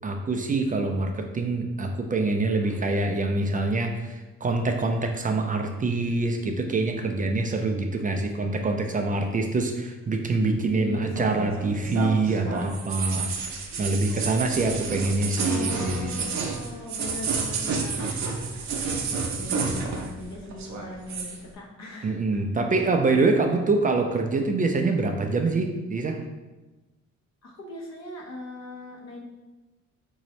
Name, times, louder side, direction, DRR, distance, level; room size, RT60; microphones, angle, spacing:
voice 1, 0.0-13.3 13.8-16.1 22.0-26.2, right 3 dB, 30° right, 4 dB, 0.4 m, -25 dB
voice 2, 2.4-2.8 10.7-12.8 15.4-18.5 19.1-22.6 23.3-23.6 27.4-29.2, left 2 dB, 60° left, -1 dB, 1.0 m, -39 dB
sound 1, 11.2-20.3 20.5-21.4, right 5 dB, 65° right, 0.7 m, -30 dB
3.9 x 2.7 x 3.1 m, 1.1 s
cardioid pair, 90°, 30 cm